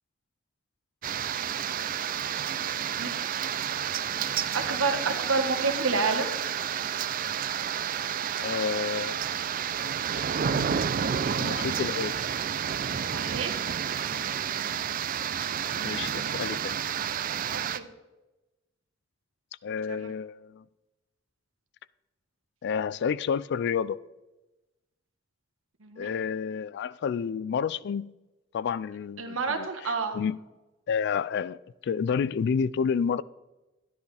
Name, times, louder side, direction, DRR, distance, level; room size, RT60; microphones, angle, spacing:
sound 1, 1.0-17.8, right 8 dB, 45° right, 0.4 m, -30 dB
voice 1, 4.5-6.3 13.1-13.6 15.9-16.4 17.5-17.8 19.9-20.1 25.8-26.1 29.2-30.2, right 4 dB, 90° right, 1.4 m, -29 dB
voice 2, 8.4-9.3 11.3-12.2 15.8-16.8 19.6-20.6 22.6-24.0 26.0-28.1 28.5-30.4 30.9-33.2, left 6 dB, 60° left, 0.3 m, -30 dB
12.0 x 10.5 x 3.4 m
head